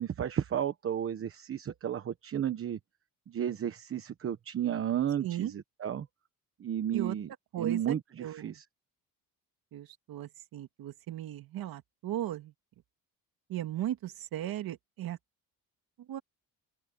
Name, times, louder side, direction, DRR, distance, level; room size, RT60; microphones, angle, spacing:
voice 1, 0.0-2.8 3.3-6.1 6.6-7.3 7.6-8.6, right 9 dB, 35° right, 1.0 m, -33 dB
voice 2, 5.2-5.5 6.9-7.2 7.5-8.5 9.7-12.5 13.5-15.2 16.1-16.2, right 12 dB, 75° right, 2.5 m, -37 dB
open air
cardioid pair, 160°, 36 cm